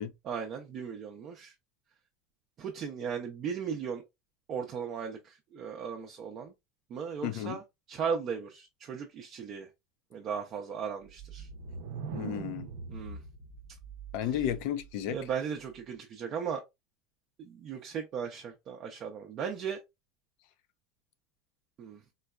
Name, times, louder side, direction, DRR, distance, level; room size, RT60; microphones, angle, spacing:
voice 1, 0.2-1.5 2.6-4.0 4.5-6.5 6.9-7.6 7.9-9.7 10.1-11.5 12.9-13.2 15.1-16.6 17.4-19.8 21.8-22.0, right 7 dB, 35° right, 0.5 m, -37 dB
voice 2, 7.2-7.6 12.1-12.7 14.1-15.2, left 10 dB, 60° left, 0.5 m, -33 dB
sound 1, 11.1-14.9, right 5 dB, 80° right, 0.6 m, -42 dB
3.8 x 2.2 x 2.3 m
supercardioid pair, 150°, 0 cm